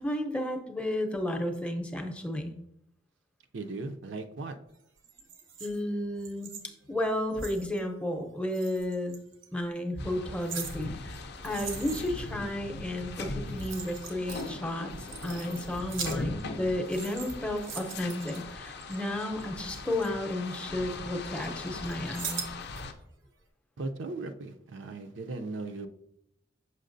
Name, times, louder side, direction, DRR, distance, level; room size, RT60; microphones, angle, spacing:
voice 1, 0.0-2.5 5.6-6.6 6.9-9.2 9.5-11.2 11.4-22.5, left 1 dB, 5° left, 4 dB, 0.6 m, -32 dB
voice 2, 3.5-4.6 23.8-25.9, right 3 dB, 65° right, 6 dB, 0.5 m, -37 dB
sound 1, 5.0-7.8 8.5-9.5 10.1-12.3 13.2-13.3 13.5-14.5 14.9-16.6 16.8-19.0 19.4-20.9 21.2-22.8 23.2-23.3, right 6 dB, 85° right, 1.0 m, -42 dB
sound 2, 10.0-22.9, left 3 dB, 60° left, 0.5 m, -40 dB
6.5 x 5.6 x 2.6 m, 0.77 s
head